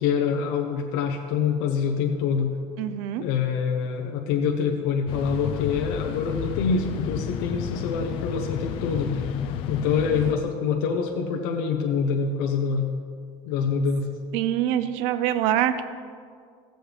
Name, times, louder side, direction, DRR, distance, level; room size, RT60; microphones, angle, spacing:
voice 1, 0.0-2.5 3.2-9.3 9.7-12.9 13.5-14.1, left 6 dB, 85° left, 2 dB, 0.9 m, -25 dB
voice 2, 2.8-3.2 14.3-15.8, right 11 dB, 80° right, 12 dB, 0.6 m, -24 dB
sound 1, 5.1-10.4, left 8 dB, 60° left, 0.5 m, -31 dB
16.0 x 7.8 x 3.4 m, 2.1 s
cardioid pair, 160°, 10 cm